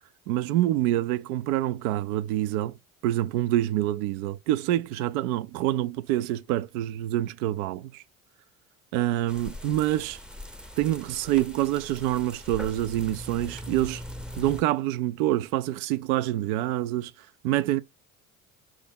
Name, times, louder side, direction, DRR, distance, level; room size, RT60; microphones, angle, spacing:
voice 1, 0.3-2.8 3.0-8.0 8.9-10.2 10.8-14.0 14.4-17.8, right 14 dB, 80° right, 0.5 m, -26 dB
sound 1, 9.3-14.6, left 1 dB, ahead, 0.6 m, -41 dB
4.2 x 3.3 x 3.8 m
hypercardioid pair, 60°, 43 cm